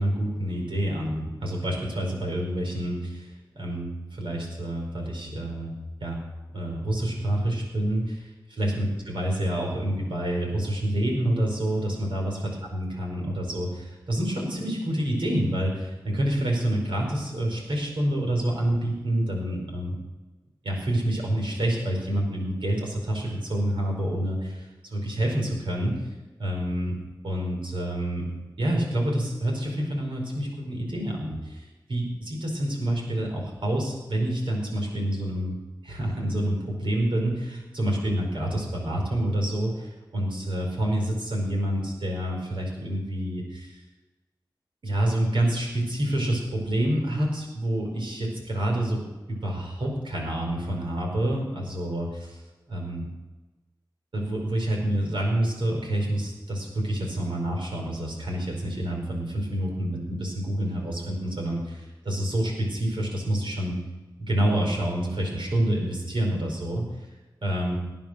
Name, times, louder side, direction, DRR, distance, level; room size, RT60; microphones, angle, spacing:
voice 1, 0.0-5.7 6.0-6.2 6.5-8.3 8.6-12.3 12.7-19.9 20.6-26.0 26.4-26.9 27.2-28.3 28.6-35.5 35.8-43.8 44.8-49.0 49.3-52.4 52.7-53.1 54.1-63.8 64.2-66.9 67.4-67.8, right 1 dB, 80° right, 0 dB, 4.8 m, -28 dB
19.0 x 9.0 x 6.4 m, 1.2 s
cardioid pair, 45°, 8 cm